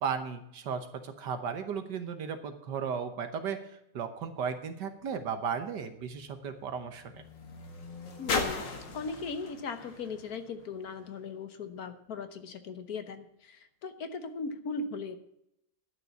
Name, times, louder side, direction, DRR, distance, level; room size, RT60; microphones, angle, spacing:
voice 1, 0.0-3.6 3.9-7.2, right 6 dB, 75° right, 8 dB, 1.7 m, -35 dB
sound 1, 4.8-11.3 12.1-12.2, left 4 dB, 80° left, 2.5 m, -39 dB
voice 2, 8.2-8.7 8.9-15.2, left 4 dB, 60° left, 10 dB, 1.4 m, -38 dB
11.0 x 6.8 x 8.2 m, 0.78 s
omnidirectional pair, 1.9 m